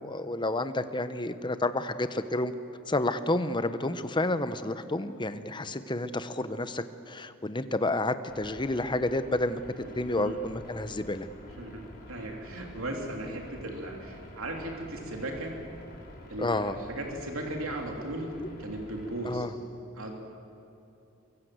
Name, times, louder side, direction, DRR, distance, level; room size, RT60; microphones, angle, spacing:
voice 1, 0.0-2.5 2.9-9.6 10.0-11.3 16.4-16.8 18.4-18.5 19.2-19.5, left 2 dB, 20° left, 11 dB, 1.0 m, -30 dB
sound 1, 8.3-19.4, left 1 dB, 50° left, 5.3 m, -48 dB
voice 2, 9.8-10.4 11.6-15.5 16.3-18.3 18.6-19.5 20.0-20.1, right 1 dB, 70° right, 1 dB, 3.4 m, -37 dB
23.5 x 23.5 x 8.0 m, 2.7 s
head